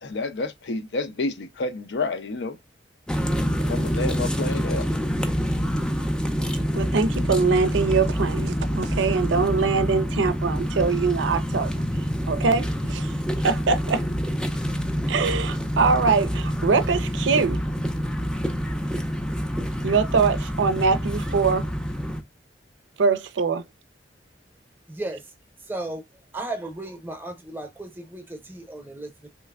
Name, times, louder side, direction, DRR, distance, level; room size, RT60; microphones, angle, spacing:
voice 1, 0.0-2.6 3.6-4.9, left 3 dB, 65° left, 0.5 m, -29 dB
sound 1, 3.1-22.2, equal, 5° left, 0.3 m, -26 dB
voice 2, 6.7-14.1 15.1-17.6 19.8-21.7 23.0-23.6, right 4 dB, 85° right, 0.5 m, -23 dB
voice 3, 24.9-25.2 25.6-26.0 26.3-29.3, right 2 dB, 10° right, 0.7 m, -35 dB
3.2 x 3.0 x 2.3 m
head